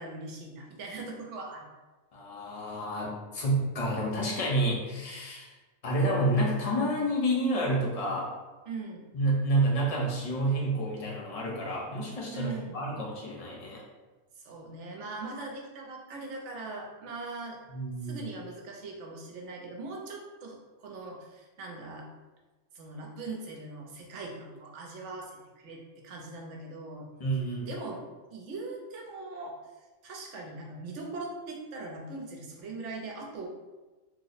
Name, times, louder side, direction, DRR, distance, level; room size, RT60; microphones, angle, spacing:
voice 1, 0.0-1.7 8.7-9.1 12.3-12.8 14.4-17.6 18.0-22.1 22.7-27.1 27.7-28.0 28.3-29.6 30.0-33.5, right 3 dB, 75° right, 0 dB, 1.0 m, -40 dB
voice 2, 2.1-5.5 5.8-8.3 9.1-13.8 17.7-18.2 27.2-27.7, right 1 dB, 40° left, -3 dB, 0.6 m, -29 dB
3.0 x 2.0 x 3.9 m, 1.2 s
omnidirectional pair, 1.3 m